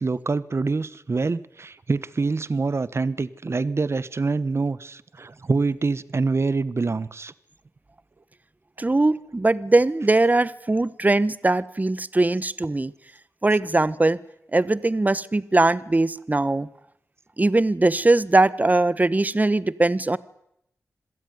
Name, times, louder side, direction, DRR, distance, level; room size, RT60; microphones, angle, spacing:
voice 1, 0.0-7.3, right 4 dB, 50° right, 18 dB, 1.2 m, -25 dB
voice 2, 8.8-12.9 13.4-14.2 14.5-16.7 17.4-20.2, right 2 dB, 30° right, 18 dB, 1.1 m, -21 dB
26.5 x 16.5 x 9.5 m, 0.79 s
cardioid pair, 50°, 6 cm